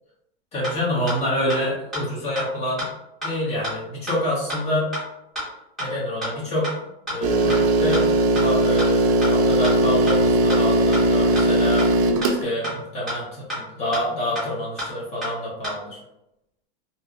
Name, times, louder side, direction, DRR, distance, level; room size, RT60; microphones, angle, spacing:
voice 1, 0.5-2.9 3.2-4.9 5.8-6.7 7.1-8.1 8.3-11.9 12.3-16.0, left 1 dB, 20° left, -6 dB, 1.1 m, -27 dB
sound 1, 0.6-0.7 1.1-1.2 1.5-1.6 1.9-2.0 2.4-2.5 2.8-2.9 3.2-3.3 3.6-3.7 4.1-4.2 4.5-4.6 4.9-5.0 5.4-5.5 5.8-5.9 6.2-6.3 6.6-6.7 7.1-7.2 7.5-7.6 7.9-8.0 8.4-8.5 8.8-8.9 9.2-9.3 9.6-9.7 10.1-10.2 10.5-10.6 10.9-11.0 11.4-11.5 11.8-11.9 12.2-12.3 12.6-12.7 13.1-13.2 13.5-13.6 13.9-14.0 14.4-14.5 14.8-14.9 15.2-15.3 15.6-15.7, equal, ahead, 1.2 m, -28 dB
sound 2, 7.2-12.4, right 1 dB, 40° right, 0.4 m, -19 dB
3.1 x 2.8 x 2.4 m, 0.86 s
supercardioid pair, 165°, 31 cm